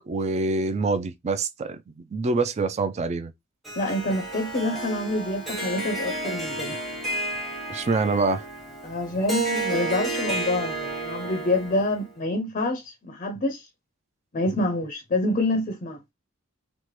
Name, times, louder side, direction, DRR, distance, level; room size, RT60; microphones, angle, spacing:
voice 1, 0.1-3.3 7.7-8.5, right 3 dB, 30° right, 0.3 m, -25 dB
Harp, 3.6-12.1, right 2 dB, ahead, 0.8 m, -31 dB
voice 2, 3.8-6.8 8.8-13.7 14.3-16.0, left 2 dB, 40° left, 0.5 m, -27 dB
3.2 x 2.1 x 2.9 m
head